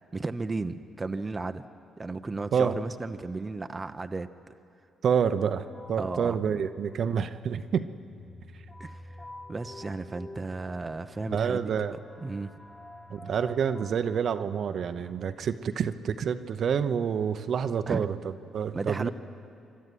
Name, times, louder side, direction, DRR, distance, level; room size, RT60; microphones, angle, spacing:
voice 1, 0.1-1.6 2.0-4.3 6.0-6.6 8.8-9.2 9.5-11.7 12.2-12.6 17.9-18.1 18.7-19.1, right 3 dB, 25° right, 9 dB, 0.7 m, -34 dB
voice 2, 5.0-7.9 11.3-11.9 13.1-19.1, right 7 dB, 60° right, 10 dB, 0.8 m, -28 dB
sound 1, 5.7-16.6, left 2 dB, 25° left, 2.3 m, -49 dB
26.5 x 12.5 x 9.3 m, 2.6 s
cardioid pair, 90°, 0 cm